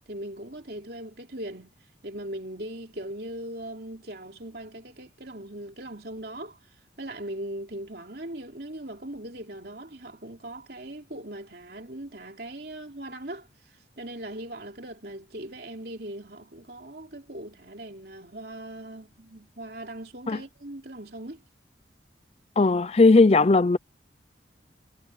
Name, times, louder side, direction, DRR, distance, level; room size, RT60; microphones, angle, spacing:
voice 1, 0.1-1.7 2.0-6.6 7.0-21.4, right 1 dB, 60° right, 3.6 m, -39 dB
voice 2, 22.6-23.8, left 3 dB, 35° left, 0.5 m, -17 dB
head